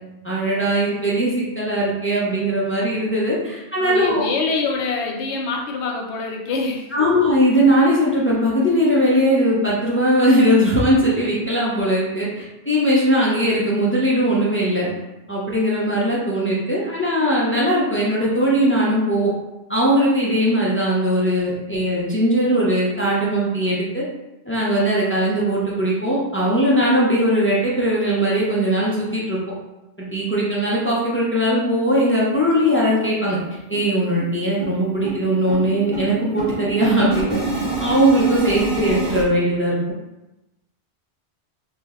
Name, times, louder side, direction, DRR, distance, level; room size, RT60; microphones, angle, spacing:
voice 1, 0.2-4.3 6.9-14.9 15.3-19.3 19.7-24.0 24.5-29.4 30.0-33.4 33.7-37.4 37.8-39.8, equal, 20° left, -6 dB, 0.3 m, -19 dB
voice 2, 3.8-7.1, left 4 dB, 80° left, 1 dB, 0.9 m, -25 dB
sound 1, 32.0-32.1 32.4-32.5 32.8-33.0 33.3-39.2, right 2 dB, 55° right, 1.1 m, -28 dB
3.0 x 2.1 x 3.5 m, 0.98 s
omnidirectional pair, 1.1 m